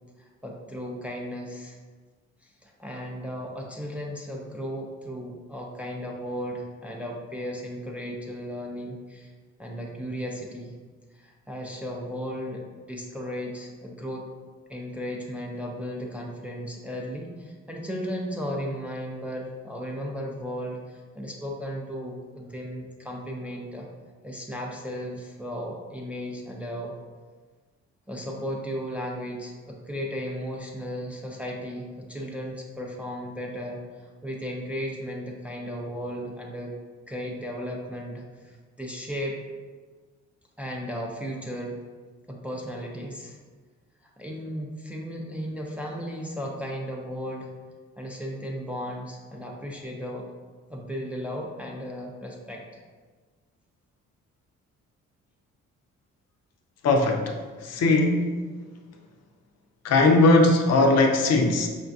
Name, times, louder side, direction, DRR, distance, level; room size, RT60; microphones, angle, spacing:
voice 1, 0.2-1.8 2.4-9.3 9.6-10.7 11.1-14.2 14.7-23.9 24.2-26.9 28.1-33.8 34.2-36.8 37.1-39.4 40.6-41.8 42.3-43.4 44.2-47.5 48.0-50.3 50.7-52.6, equal, 5° right, -1 dB, 0.4 m, -35 dB
voice 2, 56.8-58.4 59.8-61.7, left 2 dB, 55° left, 3 dB, 0.5 m, -20 dB
4.9 x 2.3 x 2.6 m, 1.4 s
cardioid pair, 90°, 30 cm